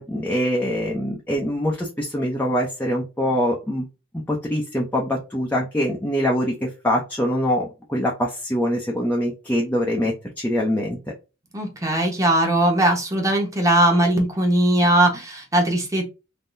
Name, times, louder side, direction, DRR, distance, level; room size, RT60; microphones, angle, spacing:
voice 1, 0.0-3.8 4.3-11.0, equal, 10° left, -2 dB, 0.6 m, -24 dB
voice 2, 11.5-16.1, right 1 dB, 15° right, 0 dB, 1.1 m, -19 dB
3.6 x 2.8 x 2.6 m, 0.29 s
head